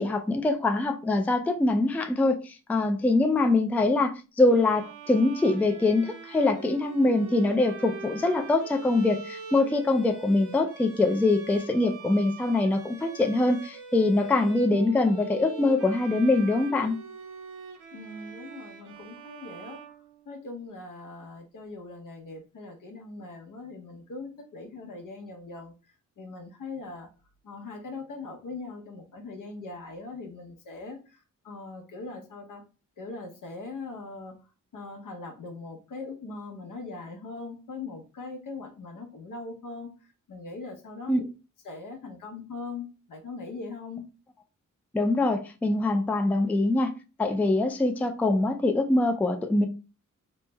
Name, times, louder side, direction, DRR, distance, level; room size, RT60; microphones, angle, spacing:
voice 1, 0.0-17.0 41.1-41.2 44.9-46.9 47.2-49.7, left 2 dB, 5° left, 0.3 m, -24 dB
Bowed string instrument, 4.5-20.6, right 5 dB, 70° right, 0.8 m, -44 dB
voice 2, 17.9-19.8 20.3-25.7 26.2-27.1 27.4-31.2 31.4-32.6 33.0-34.3 34.7-39.9 40.3-41.2 41.6-44.0, left 3 dB, 75° left, 0.9 m, -40 dB
3.2 x 2.0 x 3.3 m
wide cardioid pair, 100°, 32 cm